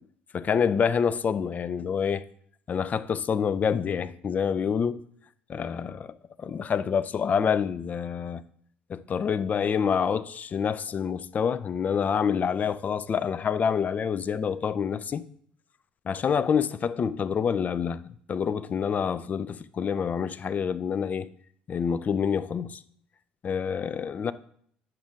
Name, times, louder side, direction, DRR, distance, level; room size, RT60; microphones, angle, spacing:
voice 1, 0.3-2.2 2.7-5.0 5.5-8.4 8.9-15.2 16.1-21.3 21.7-22.8 23.4-24.3, left 7 dB, 35° left, 0.4 m, -27 dB
10.0 x 6.0 x 2.5 m
figure-of-eight pair, 55°, 5 cm